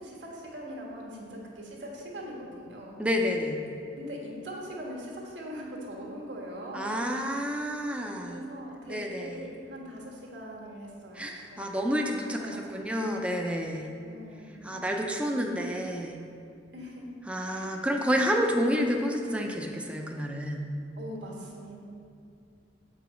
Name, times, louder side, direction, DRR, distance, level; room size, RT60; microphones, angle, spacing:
voice 1, 0.0-3.0 4.0-7.0 8.2-11.6 11.9-12.5 12.8-12.9 14.0-15.3 16.7-17.1 17.4-17.8 21.0-21.8, equal, 70° right, -2 dB, 1.5 m, -42 dB
voice 2, 3.0-3.6 6.7-8.4 8.9-9.4 11.1-13.9 14.6-16.2 17.3-20.7, equal, 5° right, 1 dB, 0.6 m, -29 dB
7.8 x 4.9 x 5.1 m, 2.4 s
head